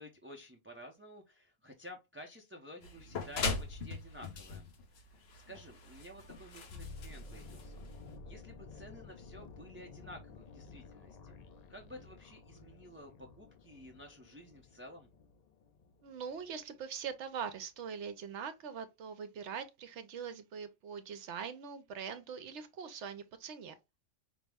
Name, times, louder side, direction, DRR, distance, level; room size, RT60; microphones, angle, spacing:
voice 1, 0.0-4.7 5.3-7.8 8.2-11.3 11.7-15.1, equal, 15° right, 0.5 m, -52 dB
sound 1, 2.8-8.2, left 4 dB, 60° left, 1.0 m, -40 dB
sound 2, 6.7-16.7 16.9-17.2, left 3 dB, 85° left, 0.3 m, -52 dB
voice 2, 16.0-23.8, right 7 dB, 70° right, 0.9 m, -42 dB
5.2 x 2.1 x 3.4 m
omnidirectional pair, 1.3 m